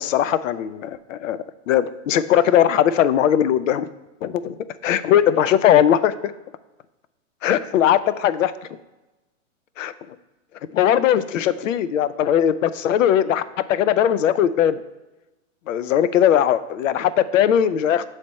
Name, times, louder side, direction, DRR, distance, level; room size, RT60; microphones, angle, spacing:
voice 1, 0.0-1.4 1.7-3.9 4.2-6.3 7.4-8.5 9.8-9.9 10.7-14.8 15.7-18.0, left 10 dB, 75° left, 14 dB, 0.5 m, -19 dB
7.4 x 3.3 x 4.1 m, 1.0 s
hypercardioid pair, 145°, 39 cm